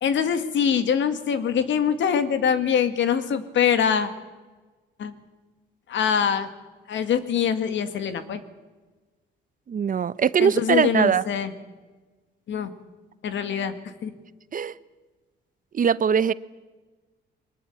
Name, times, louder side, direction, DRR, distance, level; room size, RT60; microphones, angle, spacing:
voice 1, 0.0-4.1 5.0-5.1 5.9-6.5 6.9-8.4 10.4-11.5 12.5-12.7 13.2-13.7 14.0-14.1, left 7 dB, 70° left, 10 dB, 2.0 m, -23 dB
voice 2, 9.7-11.2 14.5-14.7 15.7-16.3, right 7 dB, 45° right, 17 dB, 0.8 m, -21 dB
22.5 x 19.5 x 8.8 m, 1.2 s
cardioid pair, 90°, 20 cm